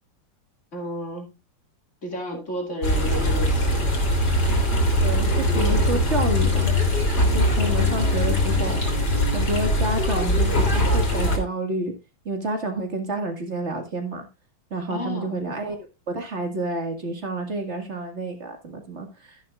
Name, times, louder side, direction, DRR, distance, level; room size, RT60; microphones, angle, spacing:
voice 1, 0.7-1.3 2.0-3.9 10.2-10.4 14.9-15.4, equal, 40° left, 2 dB, 2.8 m, -32 dB
sound 1, 2.8-11.4, left 1 dB, 55° left, 3.1 m, -21 dB
voice 2, 5.0-8.8 9.3-11.9 12.3-14.3 14.7-19.5, right 2 dB, 35° right, 4 dB, 2.2 m, -29 dB
12.5 x 11.0 x 2.4 m, 0.24 s
omnidirectional pair, 2.1 m